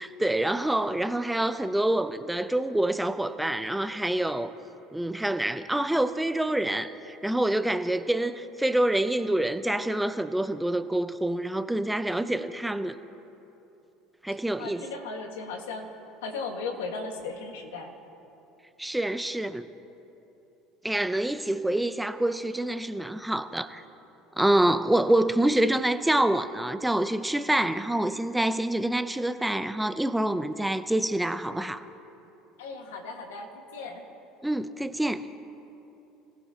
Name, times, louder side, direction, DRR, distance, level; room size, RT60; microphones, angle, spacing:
voice 1, 0.0-4.5 4.9-13.0 14.2-14.8 18.8-19.7 20.8-23.8 24.4-31.8 34.4-35.2, right 1 dB, 5° right, 11 dB, 0.7 m, -26 dB
voice 2, 14.6-15.9 16.2-17.9 32.6-34.0, left 4 dB, 90° left, 3 dB, 1.8 m, -36 dB
26.0 x 16.0 x 3.0 m, 2.9 s
supercardioid pair, 90°, 0 cm